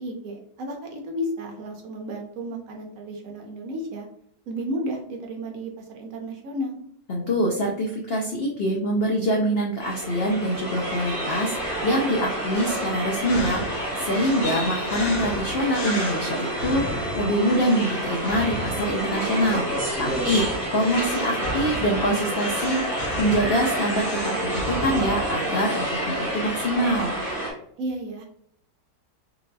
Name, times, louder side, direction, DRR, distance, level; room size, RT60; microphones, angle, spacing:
voice 1, 0.0-4.1 4.5-6.8 20.1-20.4 27.8-28.3, equal, 65° right, 2 dB, 1.0 m, -33 dB
voice 2, 7.1-20.5 20.7-27.2, equal, 80° left, -2 dB, 0.5 m, -25 dB
sound 1, 9.8-27.5, right 1 dB, 20° left, 1.4 m, -29 dB
sound 2, 12.5-25.5, left 1 dB, 55° left, 0.9 m, -35 dB
3.9 x 2.6 x 2.2 m, 0.67 s
omnidirectional pair, 1.7 m